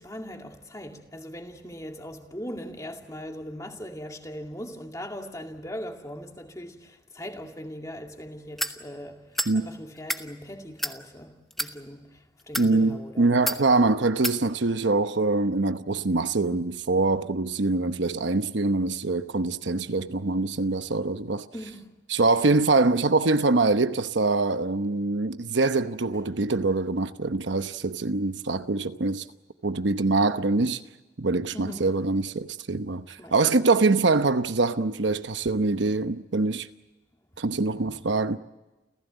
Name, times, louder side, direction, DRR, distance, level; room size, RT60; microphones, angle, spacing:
voice 1, 0.0-13.8 21.5-21.9 31.5-31.9 33.2-33.7 37.7-38.0, equal, 15° left, 2.3 m, -40 dB
sound 1, 8.6-8.8 9.3-9.5 10.0-10.2 10.8-11.0 11.5-11.7 12.4-12.7 13.5-13.6 14.2-14.4, equal, ahead, 1.0 m, -29 dB
voice 2, 12.6-21.4 22.1-29.2 29.6-30.8 31.2-36.7 37.4-38.4, right 3 dB, 70° right, 0.9 m, -24 dB
29.5 x 15.5 x 8.1 m
head